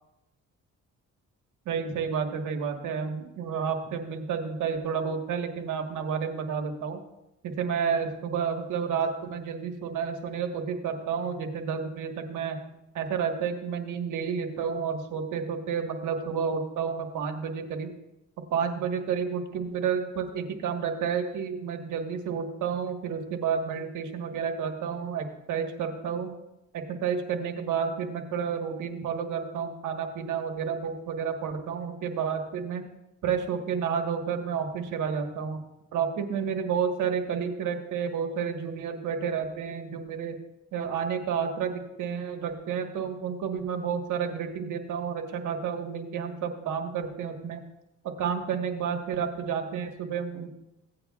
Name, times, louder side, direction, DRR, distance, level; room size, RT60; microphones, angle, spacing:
voice 1, 1.6-7.0 7.4-12.6 12.9-17.9 18.5-26.3 26.7-32.8 33.2-35.6 35.9-40.3 40.7-47.6 48.2-50.5, right 6 dB, 80° right, 5 dB, 1.4 m, -30 dB
16.0 x 8.9 x 2.4 m, 0.90 s
cardioid pair, 90°, 30 cm